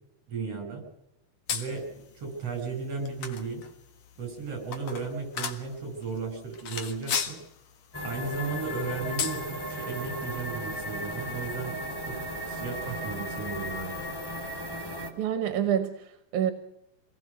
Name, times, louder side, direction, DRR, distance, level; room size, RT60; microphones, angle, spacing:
voice 1, 0.3-0.8 1.5-3.6 4.2-7.4 8.0-11.8 12.0-12.2 12.5-14.0, right 5 dB, 55° right, 6 dB, 6.3 m, -35 dB
sound 1, 1.5-14.2, left 7 dB, 65° left, 2.9 m, -40 dB
sound 2, 7.9-15.1, equal, 5° left, 3.0 m, -36 dB
voice 2, 15.2-16.5, right 9 dB, 85° right, 8 dB, 2.7 m, -27 dB
25.5 x 19.0 x 6.6 m, 0.85 s
omnidirectional pair, 3.4 m